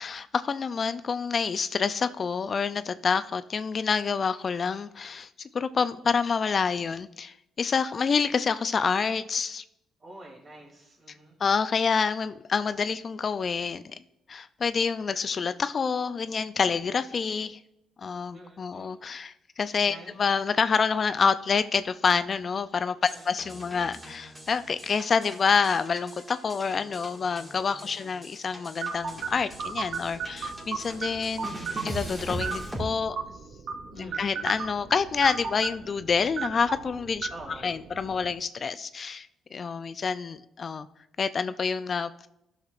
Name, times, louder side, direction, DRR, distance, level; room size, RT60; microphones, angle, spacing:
voice 1, 0.0-9.6 11.4-14.0 14.3-17.6 18.0-31.5 31.8-33.2 33.9-37.3 37.6-40.9 41.2-42.3, left 5 dB, 45° left, 12 dB, 0.3 m, -27 dB
voice 2, 10.0-11.4 18.3-18.9 19.8-20.2 23.0-23.5 27.8-28.1 33.9-34.5 37.3-37.8, right 1 dB, 40° right, 0 dB, 2.8 m, -47 dB
sound 1, 23.0-32.8, right 1 dB, 10° right, 1.8 m, -41 dB
sound 2, 28.8-38.3, right 5 dB, 70° right, 0.8 m, -36 dB
12.5 x 6.4 x 2.5 m, 0.86 s
cardioid pair, 90°, 0 cm